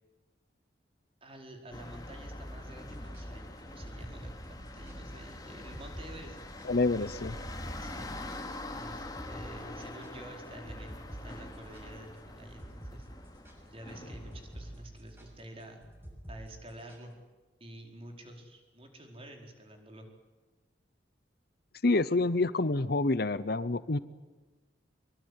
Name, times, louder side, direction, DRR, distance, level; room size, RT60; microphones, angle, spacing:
voice 1, 1.2-6.4 7.8-8.1 8.8-13.1 13.6-15.8 16.3-17.1 17.6-20.1, right 1 dB, 30° right, 3 dB, 4.7 m, -49 dB
sound 1, 1.7-14.8, left 1 dB, 20° left, 2.5 m, -44 dB
sound 2, 3.0-5.0 5.3-5.4 5.7-6.1 6.4-8.8 9.2-9.5 9.8-17.1, right 1 dB, 10° right, 6.9 m, -48 dB
voice 2, 6.6-7.4 21.8-24.0, left 2 dB, 55° left, 16 dB, 0.8 m, -27 dB
24.0 x 23.5 x 9.6 m, 1.2 s
head